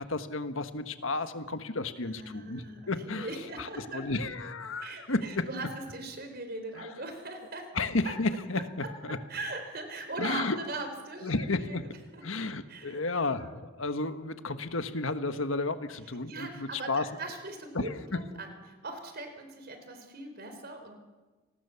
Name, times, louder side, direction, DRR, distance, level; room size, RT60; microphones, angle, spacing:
voice 1, 0.0-3.3 3.6-5.5 6.8-6.9 7.7-9.2 10.2-10.6 11.2-11.9 12.2-17.0 17.7-18.2, left 3 dB, 75° left, 9 dB, 1.5 m, -32 dB
voice 2, 2.0-4.1 4.8-7.7 9.3-11.8 12.1-12.2 12.7-13.0 13.3-13.5 16.3-20.9, right 2 dB, 50° right, 6 dB, 4.1 m, -40 dB
29.5 x 19.5 x 7.1 m, 1.3 s
head